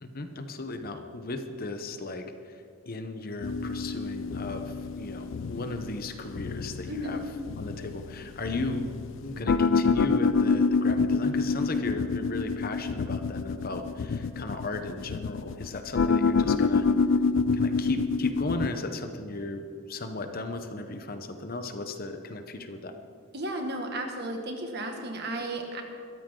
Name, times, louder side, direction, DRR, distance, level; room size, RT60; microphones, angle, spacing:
voice 1, 0.0-7.2 7.6-8.8 9.2-16.9 17.5-23.0, left 2 dB, 45° left, 7 dB, 0.9 m, -36 dB
sound 1, 3.4-18.7, left 4 dB, 60° left, 0.4 m, -27 dB
voice 2, 23.3-25.8, right 1 dB, 50° right, 3 dB, 1.9 m, -34 dB
21.5 x 14.0 x 3.8 m, 2.3 s
head